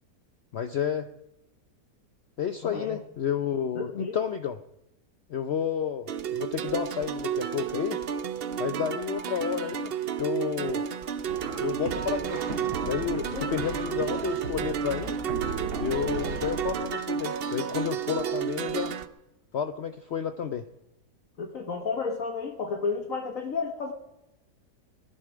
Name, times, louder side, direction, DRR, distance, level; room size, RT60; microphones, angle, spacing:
voice 1, 0.5-1.1 2.4-4.6 5.3-8.0 8.6-9.9 10.2-10.8 11.6-15.2 15.8-18.9 19.5-20.7, left 8 dB, 70° left, 10 dB, 0.6 m, -31 dB
voice 2, 2.6-3.0 3.7-4.2 13.1-13.6 21.4-23.9, left 4 dB, 55° left, 4 dB, 1.4 m, -32 dB
sound 1, 6.1-19.1, right 8 dB, 65° right, 0.6 m, -32 dB
sound 2, 11.2-16.7, right 4 dB, 90° right, 2.2 m, -37 dB
19.5 x 11.0 x 5.0 m, 0.93 s
omnidirectional pair, 1.8 m